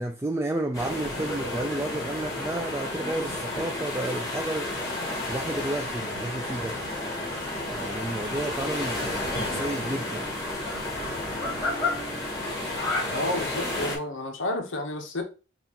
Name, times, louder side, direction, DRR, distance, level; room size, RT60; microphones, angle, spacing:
voice 1, 0.0-4.7 5.3-6.8 7.7-10.3, right 1 dB, 15° right, 0.3 m, -31 dB
sound 1, 0.7-14.0, left 2 dB, 15° left, 1.8 m, -31 dB
sound 2, 6.2-12.9, right 1 dB, 75° right, 1.5 m, -46 dB
voice 2, 13.1-15.2, left 2 dB, 65° left, 0.9 m, -30 dB
5.6 x 2.4 x 2.8 m
head